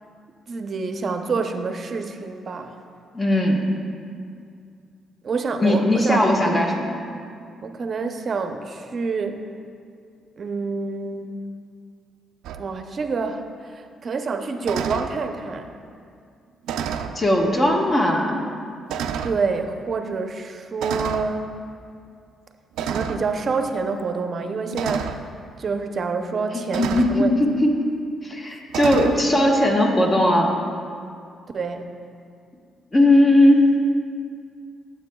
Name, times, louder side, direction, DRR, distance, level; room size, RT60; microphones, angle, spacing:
voice 1, 0.5-2.8 5.2-6.2 7.6-9.4 10.4-11.4 12.6-15.7 19.2-21.5 22.8-25.3 25.6-27.3 31.5-31.9, right 4 dB, 45° right, 6 dB, 0.6 m, -27 dB
voice 2, 3.1-3.6 5.6-6.9 17.1-18.5 26.5-27.8 28.2-30.5 32.9-33.7, left 1 dB, 30° left, 0 dB, 1.4 m, -18 dB
sound 1, 12.4-12.6 14.6-15.1 16.6-17.2 18.0-18.1 18.9-19.4 20.8-21.3 22.8-23.2 24.7-25.2 26.7-27.2 28.7-29.2, right 7 dB, 85° right, 0.4 m, -28 dB
14.5 x 7.7 x 2.3 m, 2.3 s
cardioid pair, 90°, 0 cm